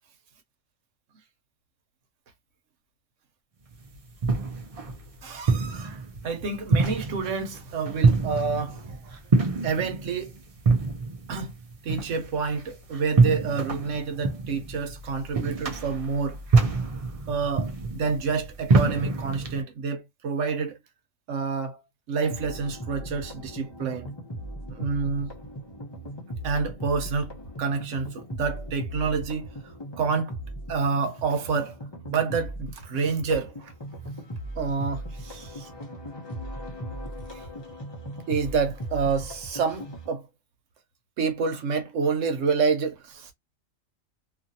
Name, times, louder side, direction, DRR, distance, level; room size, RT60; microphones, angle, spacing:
sound 1, 3.7-19.6, right 4 dB, 45° right, 0.5 m, -26 dB
voice 1, 5.2-9.2 9.6-10.3 11.3-11.6 11.8-16.4 17.3-20.8 21.3-21.8 22.1-24.1 24.7-25.3 26.4-29.5 30.0-30.4 30.7-31.8 32.1-33.7 34.6-35.7 37.3-37.4 38.3-40.3 41.2-43.3, right 5 dB, 70° right, 1.1 m, -28 dB
sound 2, 22.2-40.1, right 1 dB, 25° left, 0.7 m, -38 dB
2.7 x 2.5 x 2.7 m
omnidirectional pair, 1.4 m